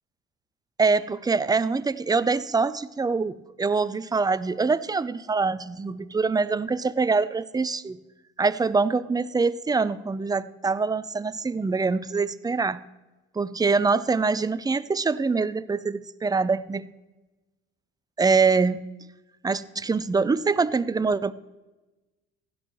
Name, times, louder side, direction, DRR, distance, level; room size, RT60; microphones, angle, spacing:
voice 1, 0.8-8.0 8.4-12.8 13.4-16.9 18.2-18.8 19.4-21.3, right 4 dB, 10° right, 15 dB, 0.5 m, -24 dB
16.0 x 11.0 x 3.0 m, 1.1 s
hypercardioid pair, 65°, 34 cm